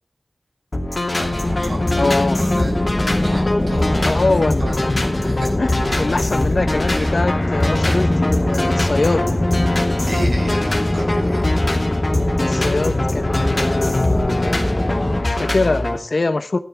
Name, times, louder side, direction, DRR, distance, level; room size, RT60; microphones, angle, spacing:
sound 1, 0.7-16.0, left 2 dB, 55° left, 2.9 m, -23 dB
voice 1, 1.1-2.9 3.1-4.3 4.6-4.9 5.2-5.5 5.9-6.2 6.8-7.3 10.1-11.6, right 1 dB, 75° right, -1 dB, 5.7 m, -32 dB
sound 2, 1.2-15.2, left 1 dB, 25° left, 1.0 m, -22 dB
voice 2, 2.0-2.4 4.0-4.7 5.6-5.7 6.0-9.2 12.4-14.6 15.2-16.6, left 3 dB, 70° left, 11 dB, 0.9 m, -23 dB
15.5 x 12.0 x 3.5 m, 0.38 s
wide cardioid pair, 60°, 0 cm